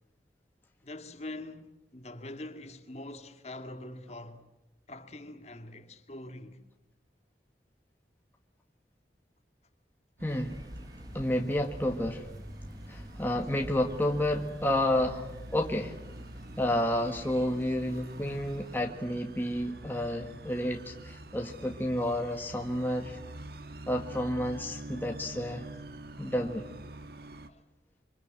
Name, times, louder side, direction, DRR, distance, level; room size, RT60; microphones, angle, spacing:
voice 1, 0.8-4.5 4.9-6.6 27.5-27.6, left 1 dB, 40° left, 2.1 m, -44 dB
voice 2, 10.2-10.6 11.1-12.3 12.9-15.9 16.6-23.2 23.9-25.7 26.2-26.6, left 1 dB, 10° left, 1.6 m, -30 dB
sound 1, 10.2-27.5, right 1 dB, 60° right, 1.6 m, -46 dB
sound 2, 10.3-18.9, equal, 20° right, 1.7 m, -50 dB
27.0 x 25.0 x 7.9 m
head